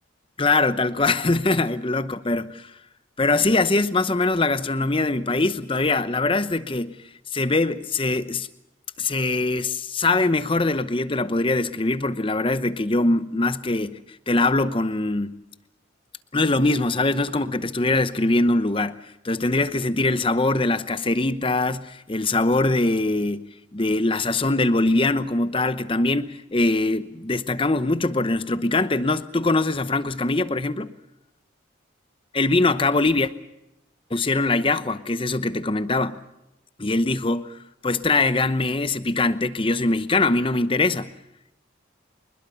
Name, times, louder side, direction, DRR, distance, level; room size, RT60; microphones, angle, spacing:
voice 1, 0.4-2.7 3.2-7.0 7.3-8.5 9.0-14.0 14.3-15.3 16.3-19.0 19.2-23.4 23.7-30.9 32.3-33.3 34.1-36.2 36.8-41.1, left 2 dB, 25° left, 0.8 m, -22 dB
25.5 x 21.0 x 6.9 m
head